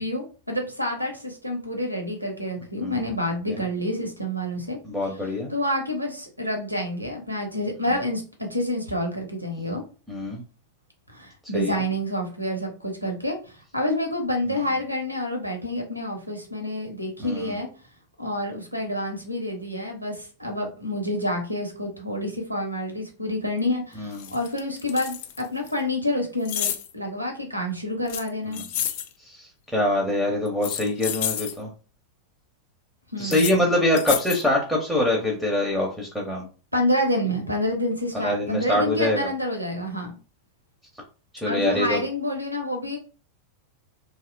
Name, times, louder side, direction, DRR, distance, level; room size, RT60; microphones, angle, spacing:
voice 1, 0.0-4.8 5.5-9.8 11.1-17.7 18.2-28.6 33.1-33.7 36.7-40.2 41.4-43.0, left 1 dB, 90° right, 4 dB, 0.6 m, -28 dB
voice 2, 4.8-5.5 7.9-8.0 10.1-10.4 11.5-11.7 17.2-17.4 24.0-24.3 29.2-31.7 33.2-36.4 38.1-39.3 41.3-42.0, left 1 dB, 5° right, -1 dB, 0.6 m, -24 dB
sound 1, 23.6-23.7 24.1-25.7 26.4-26.9 28.1-29.1 30.5-31.5 33.2-33.5 34.0-34.4, left 11 dB, 50° left, 0.3 m, -30 dB
2.7 x 2.0 x 2.5 m, 0.36 s
figure-of-eight pair, 90°, 0 cm